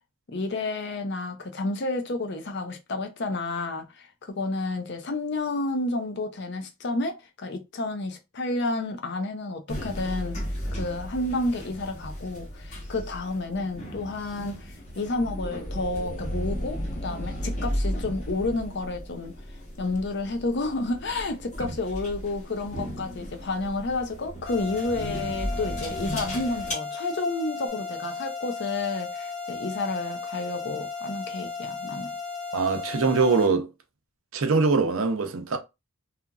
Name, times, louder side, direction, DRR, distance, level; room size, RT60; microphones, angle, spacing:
voice 1, 0.3-10.4 10.8-19.4 19.8-32.2, left 2 dB, 50° left, 0.5 m, -30 dB
sound 1, 9.7-26.7, equal, 30° left, 0.9 m, -35 dB
sound 2, 24.5-33.5, left 4 dB, 90° left, 0.9 m, -35 dB
voice 2, 32.5-33.7 34.3-35.6, right 4 dB, 65° right, 0.5 m, -23 dB
2.8 x 2.4 x 2.3 m
head